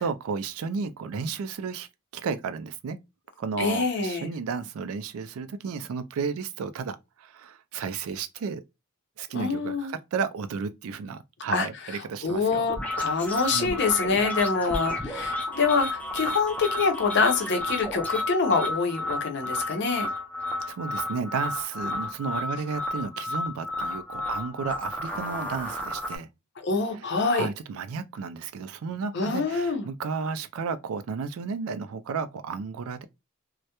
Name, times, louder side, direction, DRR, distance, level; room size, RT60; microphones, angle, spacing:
voice 1, 0.0-3.0 3.4-8.6 9.2-12.7 13.5-13.8 20.7-26.3 27.0-27.1 27.3-33.0, right 5 dB, 75° right, 0.3 m, -33 dB
voice 2, 3.6-4.3 9.3-9.9 11.5-11.7 12.2-20.1 26.6-27.5 29.1-29.9, left 4 dB, 50° left, 0.6 m, -25 dB
sound 1, 12.7-26.2, left 1 dB, 5° left, 0.4 m, -32 dB
2.2 x 2.1 x 2.8 m
head